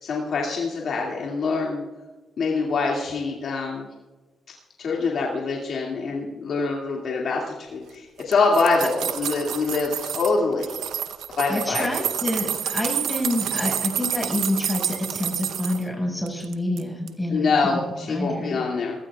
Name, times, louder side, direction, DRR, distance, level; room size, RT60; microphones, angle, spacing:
voice 1, 0.0-1.8 2.4-3.8 4.8-7.4 7.7-10.8 11.4-12.1 17.3-18.9, left 4 dB, 65° left, -2 dB, 2.2 m, -24 dB
sound 1, 8.2-10.3 10.6-15.8 16.3-16.8 17.1-17.2, right 9 dB, 85° right, 0.8 m, -29 dB
voice 2, 11.5-18.6, left 1 dB, 15° left, 0 dB, 5.2 m, -28 dB
20.5 x 14.5 x 2.4 m, 1.2 s
cardioid pair, 70°, 0 cm